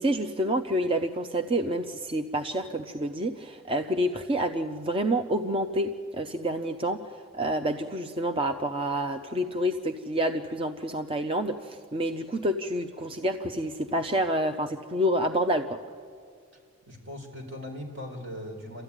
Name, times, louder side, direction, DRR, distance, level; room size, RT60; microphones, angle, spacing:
voice 1, 0.0-15.8, right 1 dB, 30° right, 6 dB, 0.7 m, -28 dB
voice 2, 16.9-18.8, left 1 dB, 65° right, 2 dB, 4.4 m, -39 dB
29.0 x 14.0 x 9.8 m, 2.1 s
head